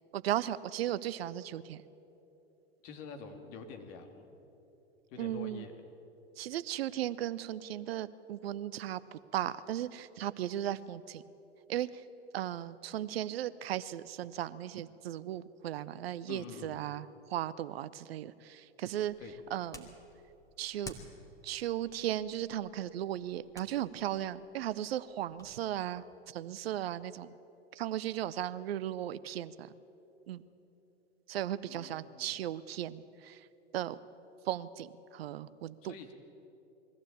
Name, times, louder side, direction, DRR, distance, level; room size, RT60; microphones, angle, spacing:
voice 1, 0.1-1.8 5.2-5.6 6.4-11.2 11.7-12.0 12.3-19.1 19.5-20.0 20.6-20.9 21.4-27.3 27.7-29.7 30.3-30.4 31.3-33.5 33.7-34.0 34.5-35.9, right 12 dB, 65° right, 16 dB, 0.8 m, -36 dB
voice 2, 2.8-4.3 5.1-5.7 16.3-16.9 19.2-19.3 31.7-32.4 35.8-36.1, left 5 dB, 45° left, 5 dB, 2.6 m, -47 dB
sound 1, 18.8-25.6, left 2 dB, 10° left, 2.4 m, -54 dB
22.0 x 15.0 x 8.7 m, 3.0 s
figure-of-eight pair, 95°, 33 cm